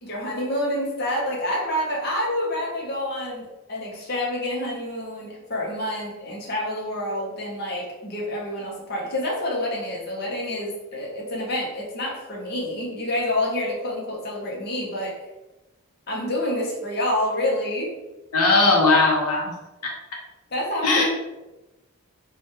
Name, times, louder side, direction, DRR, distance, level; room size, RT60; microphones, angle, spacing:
voice 1, 0.0-15.1 16.1-17.9 20.5-21.0, left 1 dB, 45° left, -3 dB, 0.9 m, -28 dB
voice 2, 18.3-19.5 19.8-19.9 20.8-21.0, left 3 dB, 85° left, -1 dB, 0.8 m, -18 dB
3.1 x 2.4 x 4.3 m, 1.0 s
head